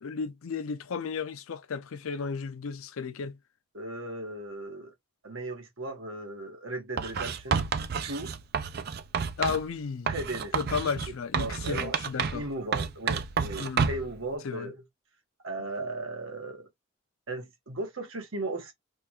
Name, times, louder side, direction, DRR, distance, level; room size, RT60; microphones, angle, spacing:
voice 1, 0.0-3.4 9.4-10.1 10.5-12.4 13.6-13.9 14.4-14.7, left 5 dB, 85° left, 0.5 m, -33 dB
voice 2, 3.7-4.9 5.2-7.6 8.0-8.3 9.5-9.6 10.1-10.8 11.4-11.9 12.3-14.8 15.4-16.7 17.3-18.7, right 2 dB, 75° right, 1.3 m, -37 dB
Writing, 7.0-9.7 10.1-12.5 12.7-14.1, right 6 dB, 50° right, 0.4 m, -30 dB
3.5 x 2.3 x 2.9 m
head